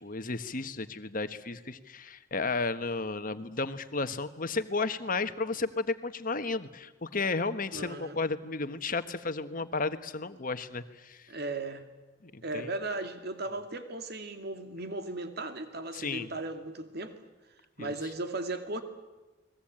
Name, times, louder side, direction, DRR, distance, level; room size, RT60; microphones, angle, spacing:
voice 1, 0.0-11.2 12.2-12.7 15.9-16.3 17.8-17.9, left 3 dB, 45° left, 10 dB, 1.4 m, -33 dB
voice 2, 7.7-8.2 11.3-11.9 12.4-17.1 17.8-18.8, right 2 dB, 55° right, 7 dB, 2.4 m, -36 dB
29.5 x 21.0 x 8.9 m, 1.1 s
head